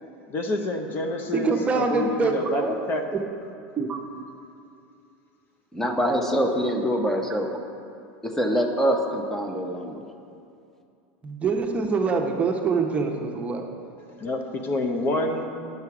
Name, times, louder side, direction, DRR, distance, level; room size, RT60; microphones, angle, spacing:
voice 1, 0.3-3.2 14.2-15.4, left 2 dB, 35° left, 4 dB, 0.8 m, -28 dB
voice 2, 1.3-2.7 3.1-3.2 3.8-4.0 11.2-13.9, right 4 dB, 20° right, 2 dB, 0.8 m, -25 dB
voice 3, 5.7-7.5 8.2-10.0, equal, 5° left, 3 dB, 0.9 m, -24 dB
9.7 x 6.8 x 4.8 m, 2.5 s
supercardioid pair, 125°, 6 cm